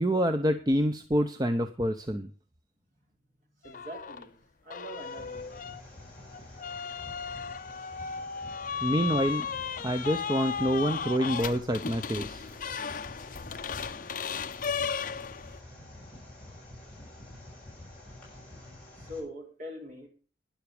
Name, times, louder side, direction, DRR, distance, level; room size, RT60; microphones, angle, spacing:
voice 1, 0.0-2.3 8.8-9.5 9.8-12.5, equal, 20° right, 0.7 m, -27 dB
sound 1, 3.6-4.3 4.7-15.6, left 6 dB, 50° left, 0.6 m, -35 dB
voice 2, 3.6-5.6 19.0-20.1, equal, 45° right, 4.5 m, -43 dB
sound 2, 4.9-19.2, left 1 dB, 5° left, 6.6 m, -48 dB
12.0 x 10.5 x 5.0 m
head